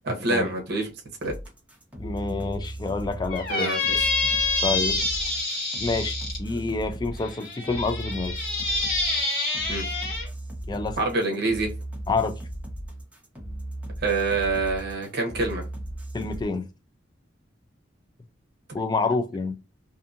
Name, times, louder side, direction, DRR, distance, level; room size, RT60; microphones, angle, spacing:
voice 1, 0.0-0.9 1.2-1.3 3.5-4.1 9.7-9.8 11.0-11.7 14.0-15.6, right 3 dB, 55° right, 0.7 m, -26 dB
sound 1, 1.2-16.4, right 1 dB, 10° right, 0.8 m, -36 dB
voice 2, 2.0-3.7 4.6-5.0 5.8-8.4 10.7-11.0 12.1-12.4 16.1-16.7 18.7-19.5, left 3 dB, 20° left, 0.3 m, -28 dB
Squeak, 3.3-6.4 7.2-10.3, left 3 dB, 50° left, 1.6 m, -27 dB
2.6 x 2.5 x 2.4 m
head